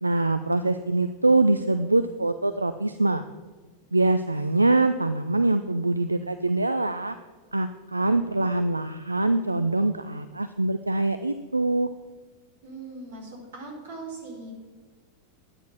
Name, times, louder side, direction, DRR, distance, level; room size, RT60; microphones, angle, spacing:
voice 1, 0.0-3.2 3.9-7.2 7.5-11.9, right 2 dB, 85° right, 10 dB, 0.4 m, -24 dB
voice 2, 12.6-14.5, right 3 dB, 60° right, 0 dB, 4.1 m, -40 dB
11.5 x 9.4 x 6.1 m, 1.5 s
figure-of-eight pair, 90°, 0 cm